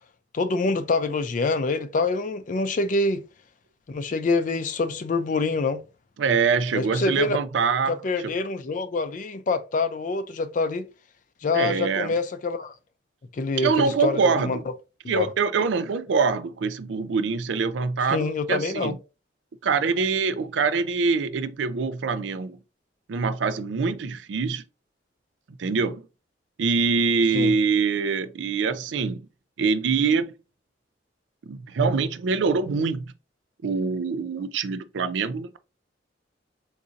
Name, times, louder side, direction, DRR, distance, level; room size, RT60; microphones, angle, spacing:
voice 1, 0.3-3.2 3.9-5.8 6.7-7.4 7.9-10.9 11.4-12.7 13.3-14.6 15.0-15.3 18.1-19.0 27.3-27.5, left 3 dB, 45° left, 0.4 m, -26 dB
voice 2, 6.2-8.0 8.2-8.3 11.5-12.2 13.6-14.6 15.1-18.9 19.6-22.6 23.1-24.6 25.6-26.0 26.6-29.3 29.6-30.3 31.4-33.1 33.6-35.6, right 5 dB, 90° right, 0.4 m, -24 dB
3.9 x 2.6 x 2.5 m
head